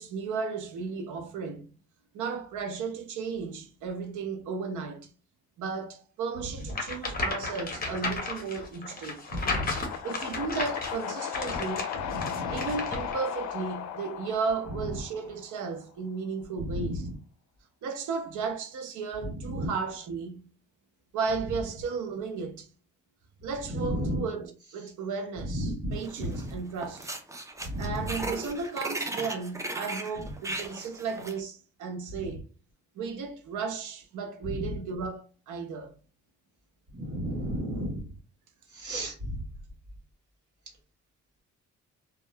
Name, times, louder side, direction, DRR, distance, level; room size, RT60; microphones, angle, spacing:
voice 1, 0.0-1.7 2.1-5.1 5.6-9.2 10.0-11.9 12.5-17.1 17.8-20.5 21.1-22.7 23.4-27.1 27.8-32.4 33.0-35.9, right 5 dB, 80° right, 0.7 m, -34 dB
sound 1, 6.7-13.2, left 3 dB, 30° left, 0.8 m, -34 dB
voice 2, 9.3-9.7 12.1-12.7 16.7-16.9 19.5-19.7 23.7-24.2 25.6-26.4 27.6-28.0 36.9-38.0 38.8-39.3, equal, 55° right, 1.3 m, -32 dB
sound 2, 9.5-15.6, left 8 dB, 70° left, 0.5 m, -36 dB
sound 3, 26.0-26.5 26.8-31.4, right 2 dB, 10° right, 0.4 m, -37 dB
2.6 x 2.2 x 2.2 m
cardioid pair, 90°, 30 cm